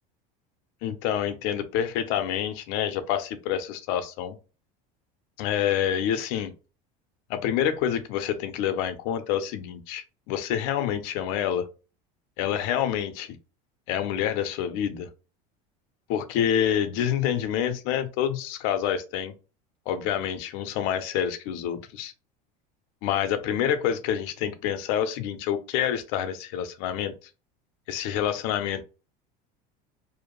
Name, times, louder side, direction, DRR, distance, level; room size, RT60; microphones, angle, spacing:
voice 1, 0.8-4.4 5.4-6.5 7.3-11.7 12.4-13.4 13.9-15.1 16.1-19.3 19.9-22.1 23.0-27.1 27.9-28.8, left 9 dB, 70° left, 10 dB, 0.5 m, -27 dB
2.5 x 2.1 x 3.0 m, 0.32 s
supercardioid pair, 125°, 19 cm